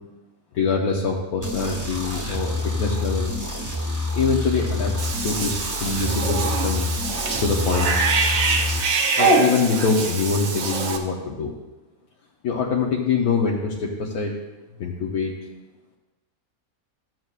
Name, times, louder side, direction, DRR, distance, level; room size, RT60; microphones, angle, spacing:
voice 1, 0.5-3.3 4.1-4.9 5.2-6.9 7.4-7.9 9.2-11.5 12.4-14.3 14.8-15.3, left 4 dB, 85° left, -2 dB, 1.3 m, -24 dB
sound 1, 1.4-8.8, left 2 dB, 15° right, 0.9 m, -27 dB
Cat / Bathtub (filling or washing), 5.0-11.0, right 4 dB, 55° right, 1.0 m, -24 dB
13.5 x 7.7 x 2.4 m, 1.1 s
omnidirectional pair, 1.5 m